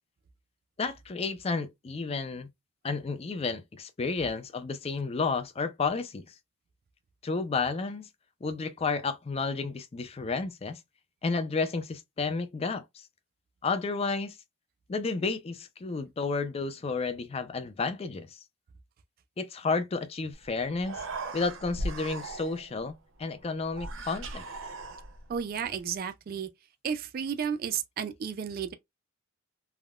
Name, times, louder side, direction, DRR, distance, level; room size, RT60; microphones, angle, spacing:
voice 1, 0.8-2.5 2.8-6.3 7.2-8.1 8.4-10.8 11.2-13.0 13.6-14.4 14.9-18.4 19.4-21.0 21.3-24.4, left 4 dB, 30° left, 0.4 m, -31 dB
Human voice, 20.3-20.4 20.7-22.8 23.7-25.4, right 2 dB, 85° right, 0.6 m, -38 dB
voice 2, 25.3-26.5 26.8-28.7, right 7 dB, 50° right, 0.3 m, -32 dB
3.4 x 2.2 x 2.3 m
head